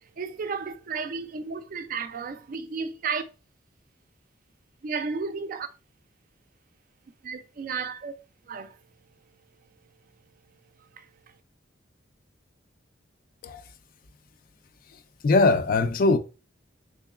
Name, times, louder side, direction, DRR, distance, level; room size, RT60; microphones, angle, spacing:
voice 1, 0.0-3.2 4.8-5.7 7.2-8.1 8.5-8.8 10.8-11.1, right 5 dB, 45° right, 0.3 m, -33 dB
voice 2, 15.2-16.2, left 3 dB, 45° left, 0.3 m, -20 dB
3.6 x 3.1 x 2.3 m
head